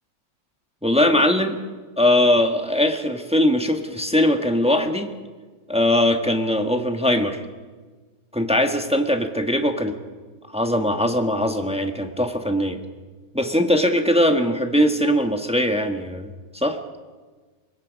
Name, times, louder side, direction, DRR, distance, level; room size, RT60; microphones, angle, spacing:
voice 1, 0.8-1.6 2.0-5.1 5.7-7.4 8.3-9.9 10.5-12.8 13.3-16.8, left 1 dB, 5° right, 5 dB, 1.1 m, -20 dB
24.5 x 22.0 x 5.3 m, 1.4 s
omnidirectional pair, 2.4 m